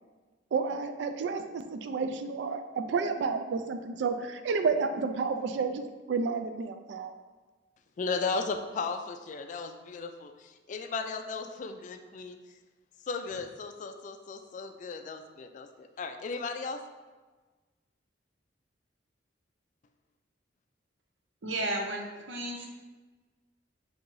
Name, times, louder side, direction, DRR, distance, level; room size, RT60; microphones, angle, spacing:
voice 1, 0.5-7.1, right 4 dB, 70° right, 8 dB, 0.3 m, -31 dB
voice 2, 8.0-12.4 13.0-16.8, left 4 dB, 40° left, 7 dB, 0.3 m, -36 dB
voice 3, 21.4-22.7, right 1 dB, 90° right, 1 dB, 0.7 m, -33 dB
5.4 x 2.8 x 2.6 m, 1.3 s
head